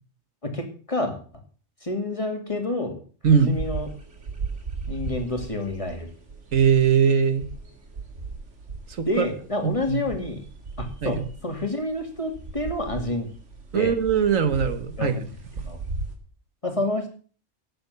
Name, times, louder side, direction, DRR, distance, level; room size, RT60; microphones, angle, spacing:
voice 1, 0.4-1.2 1.8-3.0 3.3-4.0 4.9-6.1 9.1-10.4 10.8-13.3 13.7-13.9 15.0-15.3 15.6-15.8 16.6-17.1, left 2 dB, 25° left, 5 dB, 2.4 m, -28 dB
sound 1, 3.2-16.2, right 4 dB, 65° right, 2.4 m, -37 dB
voice 2, 3.2-3.6 6.5-7.5 8.9-9.3 9.6-10.0 11.0-11.2 13.7-15.2, right 7 dB, 90° right, 11 dB, 1.8 m, -21 dB
13.0 x 8.7 x 6.9 m, 0.40 s
omnidirectional pair, 1.3 m